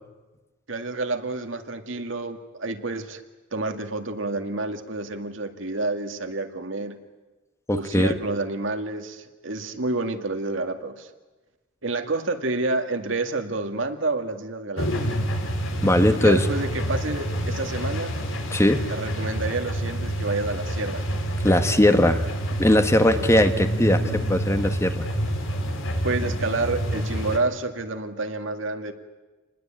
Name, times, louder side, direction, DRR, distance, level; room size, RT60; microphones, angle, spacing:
voice 1, 0.7-3.2 3.5-7.0 7.7-11.1 11.8-15.1 16.2-18.2 18.9-21.0 23.0-23.3 26.0-28.9, right 2 dB, 70° right, 6 dB, 2.1 m, -29 dB
voice 2, 7.7-8.1 15.8-16.4 18.5-18.8 21.4-22.2 22.6-25.0, left 1 dB, 15° left, 8 dB, 1.3 m, -19 dB
sound 1, 14.8-27.4, equal, 75° left, 3.5 m, -27 dB
28.0 x 20.5 x 8.9 m, 1.2 s
head